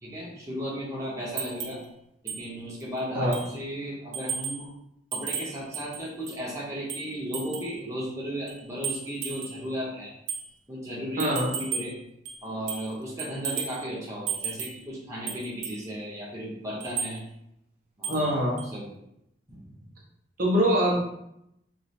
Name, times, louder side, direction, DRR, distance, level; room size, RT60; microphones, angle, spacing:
voice 1, 0.0-1.8 2.2-4.7 5.1-10.1 10.7-11.9 12.4-17.2 18.0-18.2 18.6-18.9, equal, 15° right, -6 dB, 0.8 m, -35 dB
sound 1, 1.4-1.8 2.3-2.4 2.8-2.9 3.3-3.6 4.1-4.6 5.1-6.4 6.9-7.8 8.5-9.6 10.3-10.5 11.2-12.0 12.3-12.9 13.2-13.8 14.3-14.8 15.3-15.8 16.8-17.2 18.0-18.3 18.6-18.7, right 7 dB, 85° right, 0.6 m, -34 dB
voice 2, 11.2-11.5 18.1-18.6 20.4-21.0, equal, 50° right, -4 dB, 0.8 m, -23 dB
3.1 x 2.1 x 4.1 m, 0.80 s
head